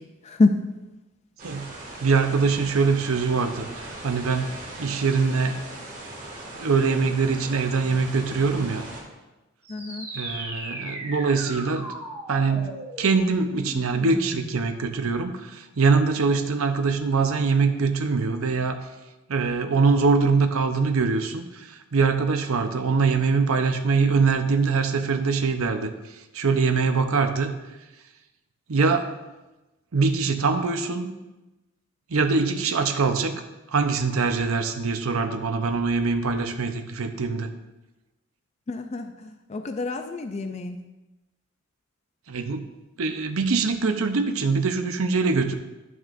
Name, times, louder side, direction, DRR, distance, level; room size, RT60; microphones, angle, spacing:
voice 1, 0.3-0.6 9.7-10.1 38.7-39.1 39.5-40.8, left 3 dB, 30° left, 7 dB, 0.4 m, -25 dB
sound 1, 1.4-9.0, right 2 dB, 40° right, 1.7 m, -39 dB
voice 2, 2.0-4.5 4.8-5.6 6.6-8.8 10.1-11.9 12.3-12.7 13.0-18.8 19.3-25.9 26.3-27.5 28.7-29.1 29.9-31.1 32.1-33.4 33.7-37.5 42.3-42.6 43.0-45.5, right 4 dB, 75° right, 7 dB, 0.7 m, -23 dB
sound 2, 9.6-14.7, right 1 dB, 15° right, 2.1 m, -37 dB
12.0 x 6.2 x 2.5 m, 1.1 s
head